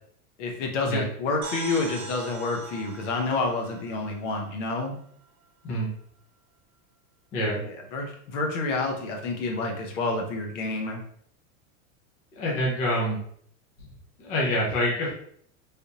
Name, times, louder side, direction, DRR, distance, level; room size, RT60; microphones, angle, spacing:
voice 1, 0.4-4.9 7.6-11.0, left 3 dB, 60° left, 2 dB, 0.8 m, -29 dB
sound 1, 1.4-5.0, right 3 dB, 50° right, 0.7 m, -41 dB
voice 2, 12.4-13.2 14.2-15.1, equal, 20° left, -4 dB, 0.5 m, -26 dB
3.4 x 2.5 x 2.8 m, 0.63 s
supercardioid pair, 165°, 42 cm